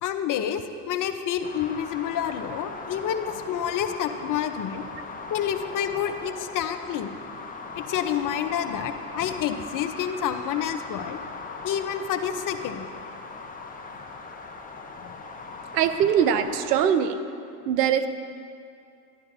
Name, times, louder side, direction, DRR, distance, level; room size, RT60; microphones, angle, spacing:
voice 1, 0.0-4.9 5.3-7.1 7.8-11.2 11.6-12.9 15.0-15.1, left 9 dB, 40° left, 9 dB, 0.7 m, -29 dB
sound 1, 1.4-16.8, left 4 dB, 20° left, 1.0 m, -39 dB
voice 2, 15.7-17.2 17.7-18.1, right 8 dB, 85° right, 10 dB, 0.7 m, -22 dB
11.5 x 11.0 x 2.7 m, 2.4 s
hypercardioid pair, 80°, 47 cm